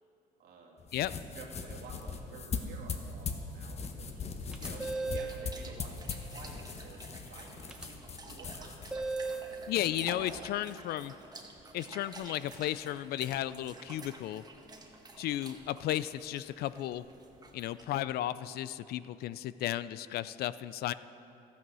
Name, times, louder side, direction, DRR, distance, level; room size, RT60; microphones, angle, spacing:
voice 1, 0.4-0.8 1.1-4.2 4.6-6.0 6.3-8.8 9.2-10.5, right 4 dB, 65° right, -1 dB, 2.2 m, -52 dB
sound 1, 0.8-10.5, left 5 dB, 40° left, 1.0 m, -41 dB
sound 2, 4.5-5.4 7.7-7.9 8.9-9.5, right 3 dB, 5° right, 1.0 m, -35 dB
sound 3, 4.5-18.1, right 3 dB, 25° right, 1.4 m, -51 dB
voice 2, 9.7-11.1 11.7-14.4 15.2-17.0 17.5-20.9, left 13 dB, 70° left, 16 dB, 0.4 m, -34 dB
13.0 x 9.3 x 6.2 m, 2.9 s
cardioid pair, 110°, 17 cm